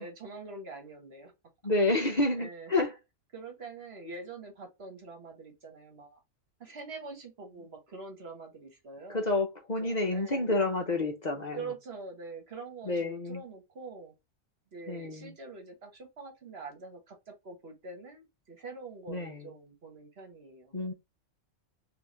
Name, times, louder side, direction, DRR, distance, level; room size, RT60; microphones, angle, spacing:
voice 1, 0.0-1.3 2.0-2.7 3.3-6.2 6.6-9.3 9.8-10.5 11.5-14.1 14.7-20.7, right 3 dB, 55° right, 1.3 m, -45 dB
voice 2, 1.6-2.9 9.1-11.6 12.8-13.4 14.9-15.3 19.1-19.5 20.7-20.9, left 2 dB, 40° left, 0.8 m, -29 dB
4.0 x 2.8 x 2.9 m
omnidirectional pair, 1.3 m